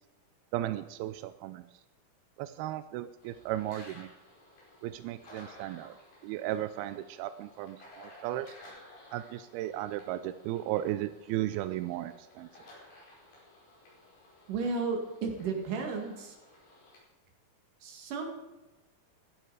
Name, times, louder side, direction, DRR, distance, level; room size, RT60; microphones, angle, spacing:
voice 1, 0.5-1.6 2.4-4.1 4.8-6.0 6.2-8.5 9.1-12.5, right 14 dB, 90° right, 11 dB, 2.5 m, -35 dB
sound 1, 3.2-17.0, left 1 dB, 85° left, 6.8 m, -56 dB
voice 2, 14.5-16.4 17.8-18.3, right 4 dB, 60° right, 3 dB, 3.5 m, -33 dB
16.0 x 11.0 x 4.9 m, 1.1 s
omnidirectional pair, 4.4 m